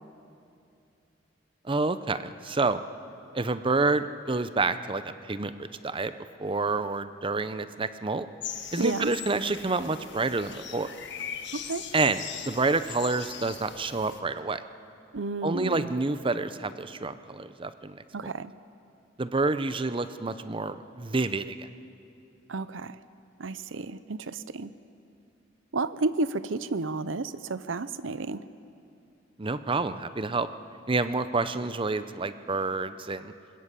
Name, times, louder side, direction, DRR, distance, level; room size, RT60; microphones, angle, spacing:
voice 1, 1.7-2.8 3.3-6.1 6.4-8.3 8.7-10.9 11.9-14.6 15.4-18.3 19.2-21.7 29.4-30.5 30.9-33.3, right 3 dB, 30° right, 12 dB, 0.7 m, -28 dB
sound 1, 8.4-14.2, left 8 dB, 65° left, 1.6 m, -40 dB
voice 2, 8.7-9.1 11.5-11.8 15.1-15.9 18.1-18.5 22.5-23.0 23.4-24.7 25.7-28.5, right 3 dB, 85° right, 15 dB, 0.7 m, -31 dB
21.0 x 20.0 x 8.4 m, 2.7 s
head